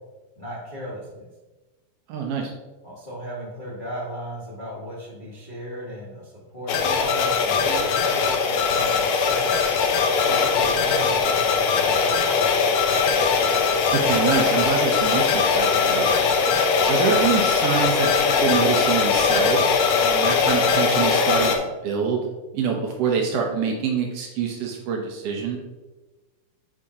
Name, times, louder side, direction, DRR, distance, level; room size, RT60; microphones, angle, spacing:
voice 1, 0.4-1.3 2.8-9.6 10.1-12.6, equal, 55° left, -7 dB, 0.5 m, -36 dB
voice 2, 2.1-2.5 13.9-16.1 16.8-22.2 22.5-25.6, right 6 dB, 85° right, 1 dB, 1.3 m, -25 dB
sound 1, 6.7-21.6, left 5 dB, 75° left, 1.5 m, -20 dB
8.7 x 4.9 x 2.8 m, 1.2 s
omnidirectional pair, 3.8 m